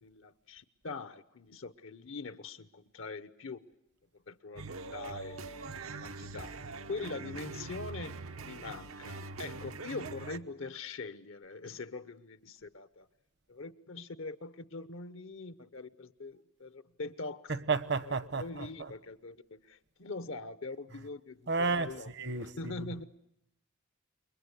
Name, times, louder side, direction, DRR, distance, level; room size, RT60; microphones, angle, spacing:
voice 1, 0.0-3.6 4.3-5.4 5.9-6.6 6.8-13.1 13.5-17.5 18.0-22.1 22.3-23.0, left 3 dB, 65° left, 1.0 m, -43 dB
sound 1, 4.6-10.4, right 3 dB, 80° right, 1.0 m, -43 dB
voice 2, 17.5-18.9 21.5-22.9, right 4 dB, 55° right, 1.0 m, -33 dB
28.5 x 22.5 x 8.3 m
head